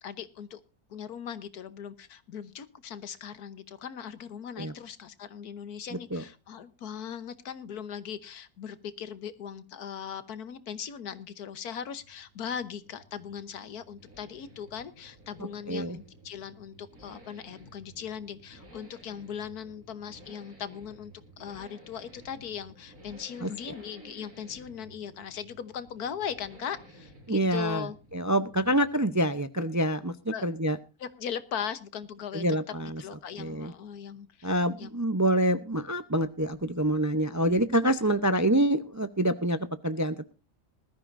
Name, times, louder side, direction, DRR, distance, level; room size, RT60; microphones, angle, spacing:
voice 1, 0.0-0.6 0.9-28.0 30.3-30.4 31.0-32.4 33.0-34.9, left 8 dB, 85° left, 14 dB, 1.5 m, -39 dB
sound 1, 11.5-29.4, right 1 dB, 70° right, 7.4 m, -54 dB
voice 2, 15.7-16.0 23.4-23.5 27.3-27.8 28.1-30.1 30.4-30.8 32.3-33.0 33.4-33.7 34.4-40.3, right 1 dB, 20° right, 11 dB, 0.5 m, -26 dB
20.0 x 13.5 x 2.6 m, 0.31 s
omnidirectional pair, 1.6 m